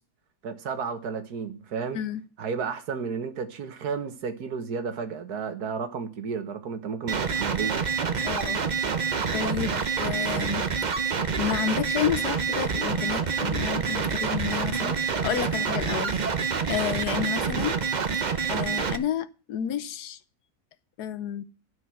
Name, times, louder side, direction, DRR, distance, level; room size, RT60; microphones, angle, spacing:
voice 1, 0.4-2.0 2.4-7.9, right 5 dB, 80° right, 1.8 m, -32 dB
sound 1, 7.1-19.0, right 5 dB, 40° right, 0.7 m, -27 dB
voice 2, 8.2-8.6 9.3-10.7 11.3-16.1 16.7-17.8 18.5-20.2 21.0-21.4, left 10 dB, 90° left, 1.4 m, -31 dB
11.5 x 6.3 x 7.6 m
omnidirectional pair, 1.6 m